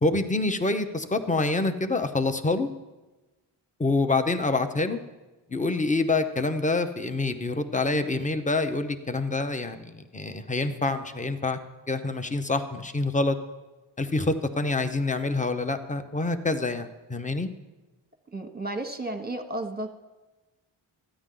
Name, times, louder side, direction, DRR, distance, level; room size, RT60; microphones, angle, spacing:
voice 1, 0.0-2.7 3.8-5.0 5.5-11.6 11.9-13.4 14.0-17.5, left 3 dB, 15° left, 8 dB, 0.8 m, -26 dB
voice 2, 18.3-19.9, right 2 dB, 20° right, 7 dB, 1.2 m, -33 dB
13.0 x 10.0 x 3.8 m, 1.1 s
cardioid pair, 40°, 50 cm